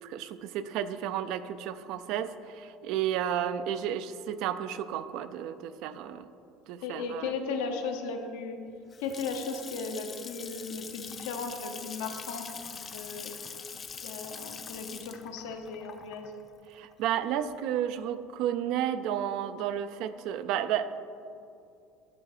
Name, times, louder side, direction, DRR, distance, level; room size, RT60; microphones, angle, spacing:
voice 1, 0.0-6.3 6.7-7.3 16.7-20.9, right 10 dB, 65° right, 12 dB, 0.4 m, -32 dB
voice 2, 6.8-8.6 9.0-13.3 14.0-16.3, left 4 dB, 85° left, 4 dB, 0.9 m, -36 dB
Water tap faucet / Sink (filling or washing) / Splash splatter, 8.7-17.5, left 6 dB, 30° left, 0.5 m, -43 dB
10.5 x 4.4 x 4.9 m, 2.5 s
cardioid pair, 125°, 0 cm